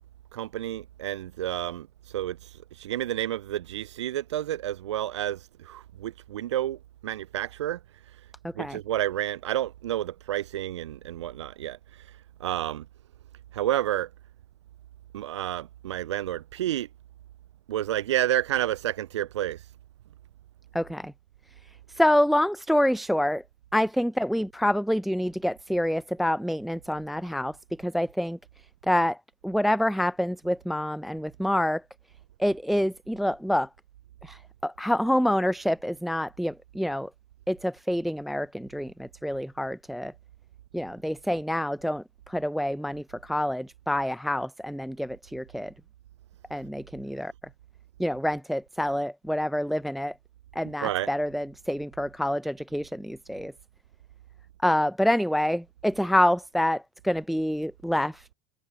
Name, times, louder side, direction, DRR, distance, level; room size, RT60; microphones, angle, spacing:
voice 1, 0.3-1.9 2.1-2.5 2.8-7.8 8.5-11.8 12.4-12.9 13.5-14.1 15.1-16.9 17.7-19.6 50.8-51.1, right 13 dB, 80° right, 0.4 m, -30 dB
voice 2, 20.7-21.1 21.9-23.4 23.7-28.4 28.9-29.2 29.4-31.8 32.4-33.7 34.2-37.1 37.5-40.1 40.7-45.7 46.5-47.3 48.0-50.1 50.5-53.5 54.6-58.3, left 1 dB, ahead, 0.5 m, -27 dB
hypercardioid pair, 75°, 15 cm